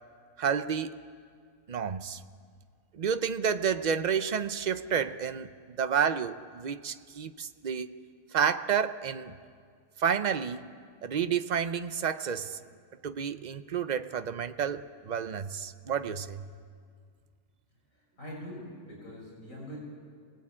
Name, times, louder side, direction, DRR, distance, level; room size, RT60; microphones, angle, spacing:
voice 1, 0.4-0.9 1.7-2.2 2.9-8.0 8.3-9.3 10.0-10.7 11.0-12.6 13.0-16.5, right 7 dB, 45° right, 11 dB, 0.6 m, -30 dB
voice 2, 17.9-19.8, equal, 60° left, -3 dB, 6.5 m, -43 dB
27.5 x 19.5 x 8.7 m, 2.1 s
omnidirectional pair, 1.6 m